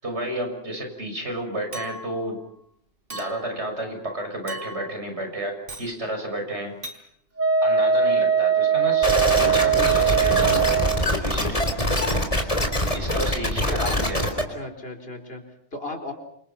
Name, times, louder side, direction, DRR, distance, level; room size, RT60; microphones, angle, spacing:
voice 1, 0.0-2.4 3.1-6.7 7.6-10.9 11.1-11.6 12.9-14.3, right 1 dB, 70° right, 4 dB, 6.7 m, -31 dB
Chink clink, 1.7-2.2 3.1-3.6 4.5-5.0 5.7-5.9 6.8-7.0, right 2 dB, 50° right, 4.0 m, -38 dB
Wind instrument woodwind instrument, 7.4-11.1, right 7 dB, 10° right, 2.3 m, -20 dB
sound 1, 9.0-14.4, left 1 dB, 30° left, 4.4 m, -23 dB
voice 2, 13.7-14.2 14.5-16.1, left 2 dB, 55° left, 4 dB, 4.6 m, -35 dB
28.5 x 27.5 x 5.9 m, 0.69 s
omnidirectional pair, 1.2 m